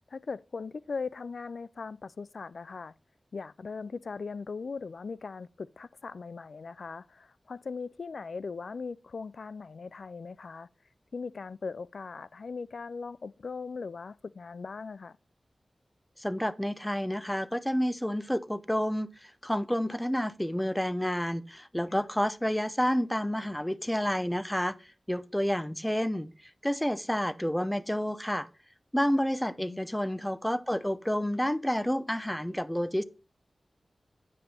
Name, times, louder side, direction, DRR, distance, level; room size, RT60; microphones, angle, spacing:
voice 1, 0.0-2.9 3.3-10.7 11.1-15.2 21.9-22.1 29.6-29.9, left 4 dB, 80° left, 0.3 m, -39 dB
voice 2, 16.2-24.8 25.1-26.3 26.6-28.5 28.9-33.0, equal, 10° left, 0.7 m, -29 dB
9.2 x 5.5 x 4.3 m
cardioid pair, 40°, 0 cm